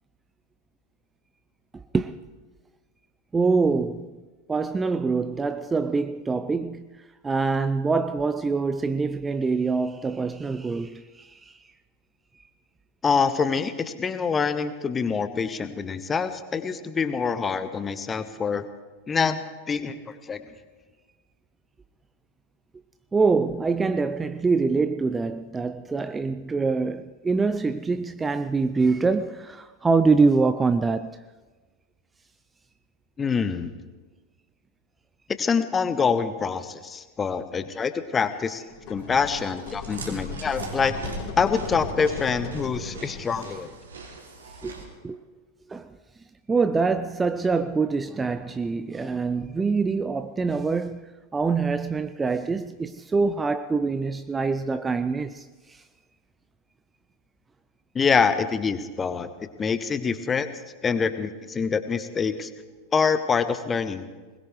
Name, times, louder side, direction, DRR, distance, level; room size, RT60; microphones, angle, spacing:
voice 1, 1.7-2.2 3.3-4.2 4.5-11.6 23.1-31.2 39.9-40.2 42.8-43.0 44.6-45.2 45.7-46.0 46.5-55.8, right 4 dB, 15° right, 0.4 m, -25 dB
voice 2, 13.0-18.7 19.1-20.4 33.2-33.7 35.4-38.6 38.9-40.9 41.4-43.7 57.9-59.3 59.6-60.5 60.8-62.5 62.9-64.1, left 5 dB, 20° left, 1.0 m, -25 dB
sound 1, 38.7-43.6, left 3 dB, 40° left, 3.7 m, -37 dB
Chewing mastication, 39.0-44.8, right 4 dB, 70° right, 2.7 m, -42 dB
21.0 x 20.5 x 3.2 m
figure-of-eight pair, 90°, 0 cm